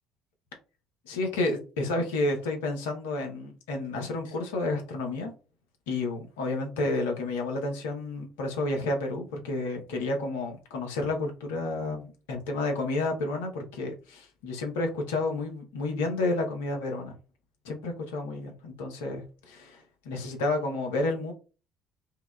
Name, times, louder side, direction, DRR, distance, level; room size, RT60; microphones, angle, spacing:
voice 1, 1.1-5.3 5.9-17.1 17.6-21.3, left 2 dB, 75° left, 3 dB, 0.8 m, -31 dB
4.7 x 2.2 x 2.2 m, 0.34 s
figure-of-eight pair, 55°, 0 cm